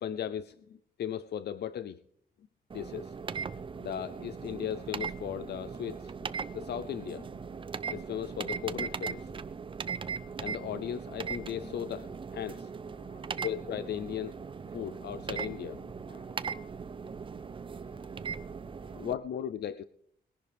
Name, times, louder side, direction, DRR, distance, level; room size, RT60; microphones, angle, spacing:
voice 1, 0.0-2.0 2.7-3.1 3.8-6.1 6.5-7.3 7.9-9.3 10.4-12.7 13.4-14.4 14.7-15.9 18.9-19.8, left 9 dB, 85° left, 14 dB, 0.5 m, -37 dB
sound 1, 2.7-19.1, right 6 dB, 30° right, 0.5 m, -39 dB
voice 2, 12.9-13.5 14.6-14.8 16.1-17.0 17.3-18.4 18.8-19.2, left 3 dB, 55° left, 5 dB, 2.3 m, -61 dB
21.0 x 11.0 x 3.5 m, 0.65 s
wide cardioid pair, 150°, 17 cm